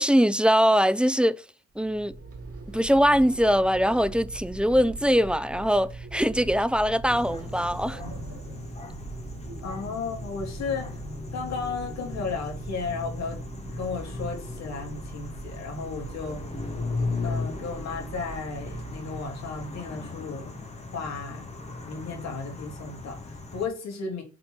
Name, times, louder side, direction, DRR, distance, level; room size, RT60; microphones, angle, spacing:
voice 1, 0.0-1.4 1.8-2.1 2.7-8.0, equal, 5° right, 0.5 m, -22 dB
sound 1, 1.7-20.0, right 3 dB, 50° right, 2.6 m, -41 dB
sound 2, 7.1-23.7, left 3 dB, 20° left, 2.0 m, -37 dB
voice 2, 9.6-11.0 11.3-13.4 13.7-16.4 17.2-20.5 20.9-21.5 21.8-24.2, left 4 dB, 60° left, 3.9 m, -34 dB
7.5 x 4.3 x 4.9 m
cardioid pair, 90°, 30 cm